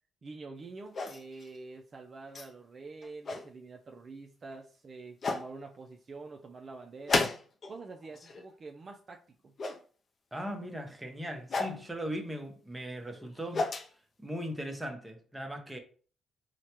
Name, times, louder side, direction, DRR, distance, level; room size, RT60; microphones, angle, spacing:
voice 1, 0.2-7.3 7.7-9.6, right 3 dB, 40° right, 0.4 m, -46 dB
sound 1, 0.9-1.5 2.3-2.5 3.0-3.5 4.5-4.6 5.2-5.5 7.1-7.8 8.0-8.5 9.6-9.8 11.5-11.8 13.2-13.9, left 3 dB, 45° left, 0.4 m, -32 dB
voice 2, 10.3-13.7 14.2-15.8, equal, 10° right, 0.8 m, -38 dB
4.6 x 2.1 x 2.9 m
cardioid pair, 90°, 0 cm